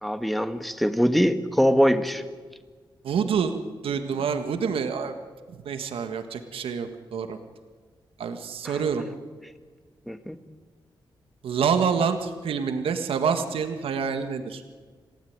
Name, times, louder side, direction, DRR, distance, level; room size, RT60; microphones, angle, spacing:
voice 1, 0.0-2.2 8.7-8.8 10.1-10.4, equal, ahead, 9 dB, 1.9 m, -23 dB
voice 2, 3.0-3.6 3.8-5.1 5.6-7.4 8.2-9.1 11.4-14.6, right 6 dB, 90° right, 7 dB, 1.7 m, -27 dB
27.0 x 16.5 x 9.6 m, 1.5 s
cardioid pair, 70°, 9 cm